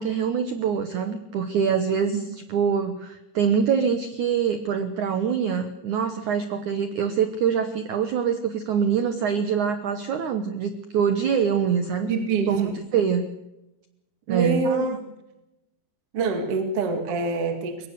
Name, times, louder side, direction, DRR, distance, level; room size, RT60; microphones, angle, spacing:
voice 1, 0.0-12.1 12.5-13.3 14.3-15.0, right 7 dB, 85° right, 9 dB, 1.7 m, -24 dB
voice 2, 12.1-12.8 14.3-14.9 16.1-17.9, right 4 dB, 40° right, 6 dB, 2.4 m, -25 dB
23.0 x 20.0 x 6.8 m, 0.95 s
omnidirectional pair, 5.3 m